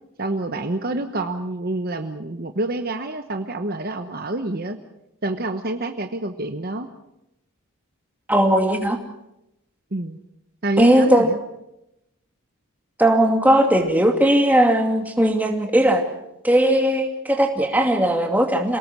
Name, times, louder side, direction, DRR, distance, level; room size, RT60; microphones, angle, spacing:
voice 1, 0.2-4.8 5.2-6.9 9.9-10.2 10.6-11.4, right 2 dB, 45° right, 7 dB, 1.1 m, -27 dB
voice 2, 8.3-9.0 10.8-11.3 13.0-16.0 16.4-18.8, right 1 dB, 10° right, 3 dB, 2.4 m, -18 dB
28.0 x 18.5 x 6.2 m, 0.86 s
head